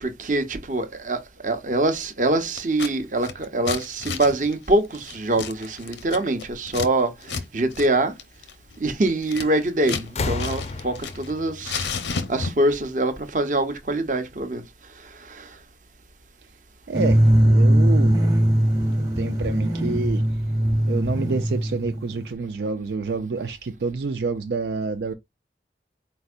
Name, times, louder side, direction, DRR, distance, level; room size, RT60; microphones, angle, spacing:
voice 1, 0.0-8.1 8.8-14.6 15.0-15.6, right 2 dB, 45° right, 0.8 m, -24 dB
Scissors, 2.6-2.9 3.2-6.9 7.2-7.4 7.7-7.9 8.2-10.1 10.4-11.3 11.6-12.7, left 5 dB, 90° left, 0.8 m, -32 dB
sound 1, 9.4-9.7 10.0-12.8 13.9-14.0, left 3 dB, 35° left, 0.5 m, -32 dB
sound 2, 16.9-22.3, right 1 dB, 25° right, 1.1 m, -20 dB
voice 2, 16.9-18.2 19.0-20.2 20.9-25.1, right 4 dB, 75° right, 0.4 m, -28 dB
4.4 x 4.0 x 2.4 m
head